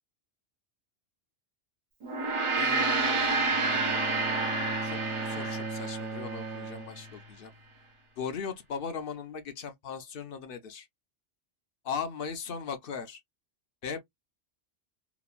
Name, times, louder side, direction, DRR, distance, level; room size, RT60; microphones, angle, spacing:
Gong, 2.0-6.6, right 3 dB, 35° right, 0.5 m, -29 dB
voice 1, 2.6-4.0 4.8-7.5 8.2-10.9 11.8-13.2 13.8-14.0, left 6 dB, 60° left, 0.8 m, -38 dB
Bowed string instrument, 3.5-7.6, right 3 dB, 75° right, 1.0 m, -38 dB
3.0 x 2.1 x 2.3 m
omnidirectional pair, 1.1 m